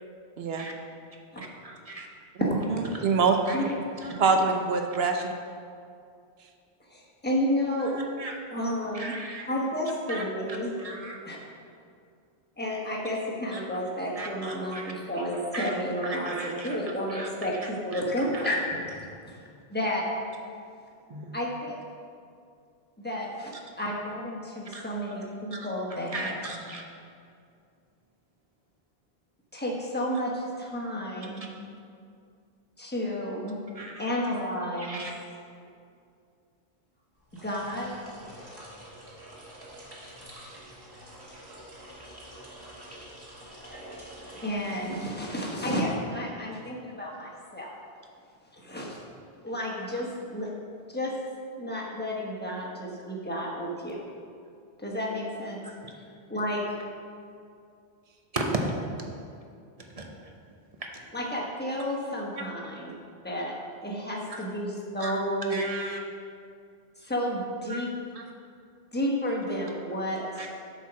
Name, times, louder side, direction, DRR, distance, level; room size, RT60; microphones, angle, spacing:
voice 1, 0.4-0.7 2.4-3.3 4.2-5.3, right 4 dB, 75° right, 4 dB, 0.9 m, -25 dB
voice 2, 1.6-2.1 2.9-3.0 3.5-3.6 4.0-4.1 7.8-8.3 8.9-9.5 10.1-10.2 10.8-11.2 13.5-13.6 14.2-14.9 15.5-16.8 17.1-18.0 18.3-18.4 21.1-21.3 24.6-25.2 25.5-25.7 26.1-26.8 31.4-31.5 33.7-34.0 34.8-35.1 55.8-55.9 58.3-58.6 59.8-60.1 60.8-61.0 62.4-62.5 64.3-64.4 65.0-65.1 65.5-66.0 67.7-67.8 68.1-68.2 70.4-70.5, right 2 dB, 40° right, 1 dB, 0.8 m, -37 dB
voice 3, 6.9-7.9 8.5-9.2 9.5-10.7 11.2-11.4 12.6-16.3 16.6-18.9 19.2-19.4 19.7-20.0 21.3-21.8 23.0-26.3 29.5-31.4 32.8-33.6 34.0-35.0 37.4-37.9 43.4-47.7 48.5-49.0 49.4-50.5 50.9-51.1 51.6-54.0 54.8-55.6 56.0-56.1 56.3-56.6 61.1-62.9 63.2-65.5 67.0-67.9 68.9-70.5, equal, 10° left, -3 dB, 1.2 m, -31 dB
sound 1, 37.2-45.6, right 1 dB, 25° right, 1.5 m, -47 dB
7.9 x 4.7 x 5.9 m, 2.4 s
omnidirectional pair, 1.0 m